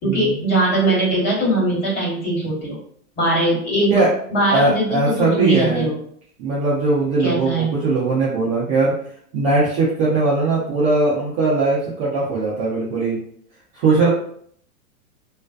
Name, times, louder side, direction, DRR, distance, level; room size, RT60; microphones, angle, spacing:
voice 1, 0.0-2.8 3.2-4.0 4.3-5.9 7.2-7.7, right 1 dB, 40° left, -5 dB, 1.4 m, -20 dB
voice 2, 4.5-5.9 6.4-8.9 9.3-13.2 13.7-14.1, right 3 dB, 25° right, -7 dB, 0.4 m, -20 dB
2.4 x 2.1 x 2.4 m, 0.62 s
hypercardioid pair, 130°, 44 cm